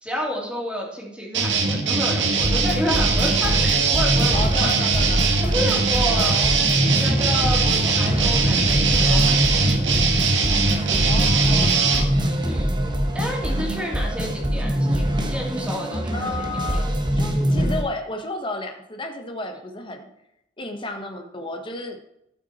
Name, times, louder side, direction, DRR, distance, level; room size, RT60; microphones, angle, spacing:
voice 1, 0.0-4.7 5.4-6.4 7.0-10.5 12.4-12.7 13.1-16.2 16.7-16.8, equal, 5° right, -2 dB, 2.8 m, -30 dB
sound 1, 1.3-12.0, right 4 dB, 80° right, 1.7 m, -21 dB
sound 2, 2.4-17.8, equal, 25° right, 1.2 m, -23 dB
voice 2, 4.3-5.3 6.1-6.5 11.0-12.2 13.7-13.8 16.1-20.1 20.6-22.1, left 2 dB, 25° left, 4 dB, 1.2 m, -32 dB
13.5 x 6.0 x 4.2 m, 0.79 s
head